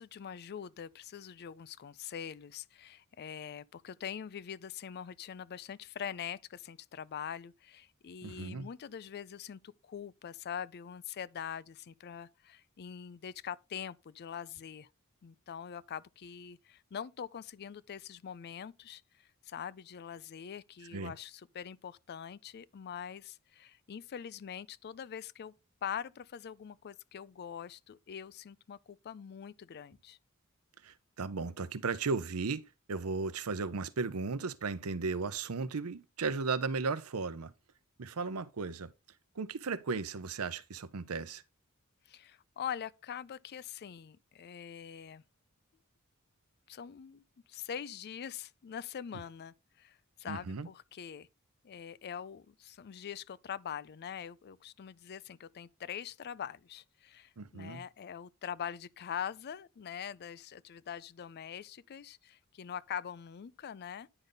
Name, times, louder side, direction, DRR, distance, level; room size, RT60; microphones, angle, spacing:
voice 1, 0.0-14.9 15.2-25.5 25.8-30.2 42.1-45.2 46.7-47.2 47.5-51.3 51.6-64.1, left 8 dB, 50° left, 0.4 m, -43 dB
voice 2, 8.2-8.7 20.9-21.1 30.8-37.5 38.0-38.9 39.4-41.4 50.3-50.7 57.4-57.8, right 4 dB, 85° right, 0.7 m, -35 dB
9.9 x 5.2 x 3.9 m
head